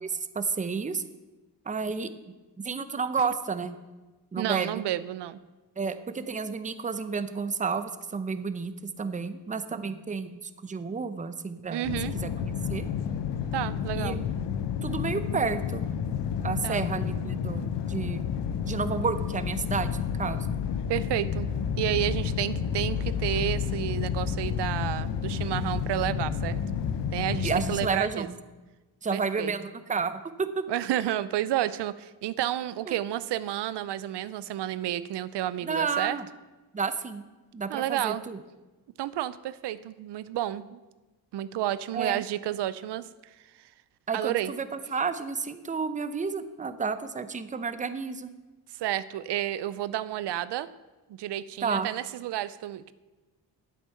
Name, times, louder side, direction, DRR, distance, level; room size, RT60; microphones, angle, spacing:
voice 1, 0.0-1.0 1.7-2.1 2.6-3.8 4.3-4.8 5.8-8.7 9.0-11.9 12.1-12.9 13.9-14.2 14.8-15.8 16.4-18.2 18.6-20.5 27.4-28.4 29.0-30.5 32.9-33.0 35.6-36.3 36.7-37.2 37.5-38.4 41.9-42.2 44.1-48.3 51.6-51.9, right 5 dB, 20° right, 11 dB, 0.6 m, -31 dB
voice 2, 4.4-5.4 11.7-12.1 13.5-14.2 16.6-16.8 20.9-21.5 21.8-26.6 27.1-28.3 29.1-29.5 30.7-36.2 37.7-38.2 39.0-40.8 41.3-43.0 44.1-44.5 48.8-50.7 51.1-52.9, right 13 dB, 80° right, 16 dB, 0.5 m, -31 dB
sound 1, 11.8-27.9, left 7 dB, 85° left, 0.8 m, -30 dB
10.0 x 8.2 x 5.6 m, 1.2 s
cardioid pair, 115°, 41 cm